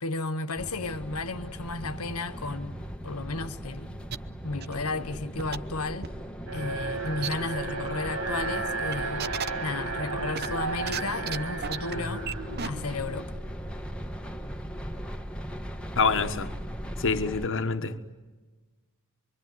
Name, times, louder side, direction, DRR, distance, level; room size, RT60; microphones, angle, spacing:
voice 1, 0.0-2.8 3.0-4.0 4.4-6.1 6.5-9.3 9.6-12.3 12.6-13.3, left 3 dB, 80° left, 1.5 m, -33 dB
sound 1, 0.6-17.5, equal, 5° left, 1.4 m, -38 dB
sound 2, 4.1-4.2 4.6-4.8 5.4-5.6 6.0-6.1 7.2-7.4 7.7-7.8 8.9-9.5 10.3-11.0 11.3-11.4 11.6-11.9 12.3-12.4 12.6-12.7, right 7 dB, 45° right, 0.8 m, -32 dB
Alarm, 6.5-13.6, right 3 dB, 90° right, 4.1 m, -34 dB
voice 2, 16.0-16.5 17.0-18.1, left 4 dB, 60° left, 1.4 m, -26 dB
26.5 x 24.0 x 9.5 m
head